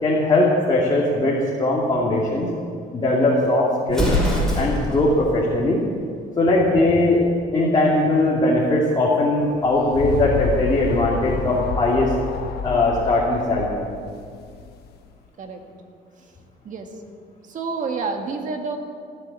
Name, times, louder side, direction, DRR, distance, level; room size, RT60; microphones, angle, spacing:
voice 1, 0.0-2.5 2.9-4.1 4.5-5.8 6.4-7.2 7.5-12.1 12.6-13.9, left 2 dB, 25° left, -5 dB, 2.6 m, -20 dB
Explosion, 3.9-5.0, left 1 dB, 5° left, 4.7 m, -22 dB
sound 1, 9.4-15.0, left 6 dB, 70° left, 1.0 m, -30 dB
voice 2, 17.4-18.8, right 4 dB, 50° right, 4 dB, 1.9 m, -29 dB
16.5 x 7.9 x 8.3 m, 2.3 s
cardioid pair, 110°, 17 cm